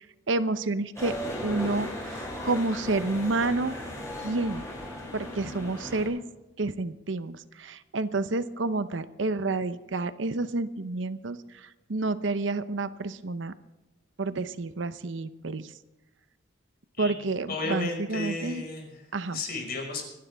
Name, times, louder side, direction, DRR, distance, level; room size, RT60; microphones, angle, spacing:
voice 1, 0.3-1.1 1.4-3.8 4.2-4.6 5.1-6.2 6.6-13.5 14.2-15.7 17.0-18.6 19.1-19.4, right 3 dB, 75° right, 13 dB, 0.8 m, -29 dB
sound 1, 0.9-6.1, left 1 dB, 15° left, 6.5 m, -36 dB
voice 2, 17.5-19.1 19.3-20.0, left 2 dB, 55° left, 2 dB, 5.2 m, -33 dB
25.5 x 11.5 x 3.5 m, 1.0 s
head